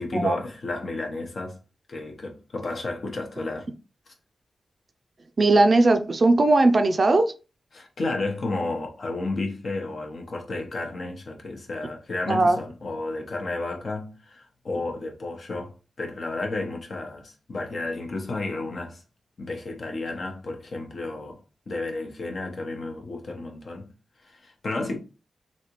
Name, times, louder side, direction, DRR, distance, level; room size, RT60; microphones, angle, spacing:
voice 1, 0.0-1.6 1.9-3.7 7.7-19.0 19.4-21.4 21.7-23.9 24.2-25.0, left 2 dB, 60° left, 0.9 m, -32 dB
voice 2, 5.4-7.3 12.3-12.6, right 2 dB, 45° right, 0.4 m, -18 dB
3.3 x 2.7 x 2.9 m
wide cardioid pair, 85°, 0 cm